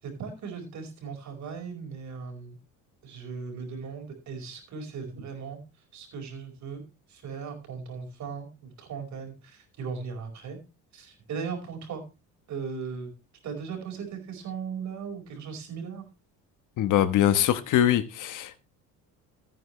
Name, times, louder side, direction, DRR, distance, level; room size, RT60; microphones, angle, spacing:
voice 1, 0.0-2.6 3.0-5.6 5.9-6.8 7.1-10.6 10.9-12.0 12.5-13.1 13.4-16.0, right 5 dB, 55° right, 4.9 m, -38 dB
voice 2, 16.8-18.6, left 11 dB, 60° left, 1.2 m, -23 dB
15.0 x 9.2 x 3.2 m
cardioid pair, 115°, 34 cm